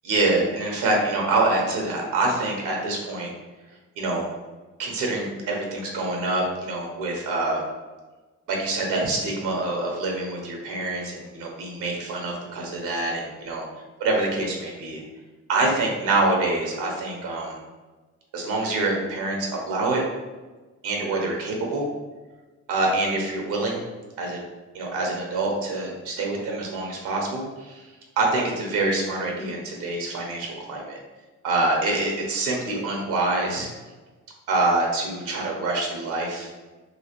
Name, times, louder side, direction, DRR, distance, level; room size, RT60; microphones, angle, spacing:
voice 1, 0.0-3.3 4.0-4.2 4.8-7.6 8.5-13.6 14.0-15.0 15.5-17.6 18.3-20.0 20.8-21.9 22.7-23.8 24.2-24.4 24.7-27.8 28.2-31.0 31.4-33.7 34.5-36.5, right 2 dB, 90° right, 0 dB, 0.8 m, -25 dB
3.0 x 2.8 x 2.8 m, 1.2 s
cardioid pair, 90°, 30 cm